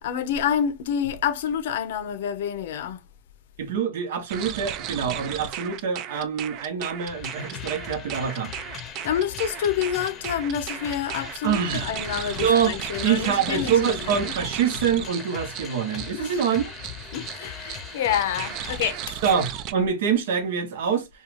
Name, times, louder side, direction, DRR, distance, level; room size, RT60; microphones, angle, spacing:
voice 1, 0.0-3.0 9.0-14.0 16.2-16.4 17.1-19.2, left 9 dB, 75° left, 0.5 m, -28 dB
voice 2, 3.6-8.5 11.4-11.9 12.4-12.7 13.0-16.6 19.2-21.1, right 7 dB, 80° right, 0.8 m, -25 dB
sound 1, 4.3-19.7, right 10 dB, 45° right, 0.3 m, -35 dB
sound 2, 7.1-18.8, left 7 dB, 30° left, 0.6 m, -40 dB
2.4 x 2.3 x 3.1 m
supercardioid pair, 125°, 0 cm